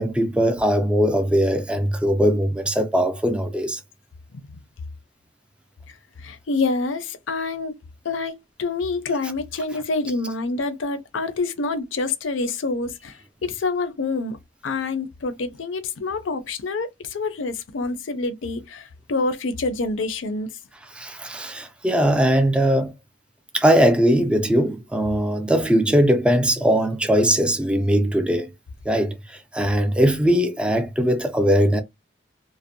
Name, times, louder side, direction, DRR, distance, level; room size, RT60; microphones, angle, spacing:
voice 1, 0.0-3.8 20.9-22.9 23.5-28.5 28.9-31.8, equal, 5° right, 0.3 m, -20 dB
voice 2, 6.2-7.7 8.0-14.4 14.6-20.5, left 3 dB, 75° left, 0.5 m, -27 dB
2.5 x 2.0 x 2.5 m
head